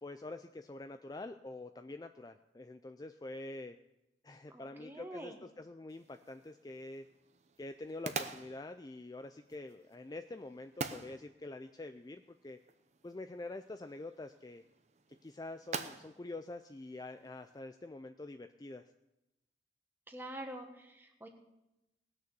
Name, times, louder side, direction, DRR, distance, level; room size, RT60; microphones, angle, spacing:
voice 1, 0.0-3.8 4.2-7.1 7.6-12.6 13.0-14.6 15.2-18.8, left 2 dB, 20° left, 8 dB, 0.3 m, -46 dB
voice 2, 4.5-5.4 20.1-21.3, right 1 dB, 10° right, 3 dB, 1.4 m, -46 dB
sound 1, 5.9-17.6, right 4 dB, 40° right, 0.7 m, -47 dB
18.5 x 6.6 x 6.9 m, 0.94 s
head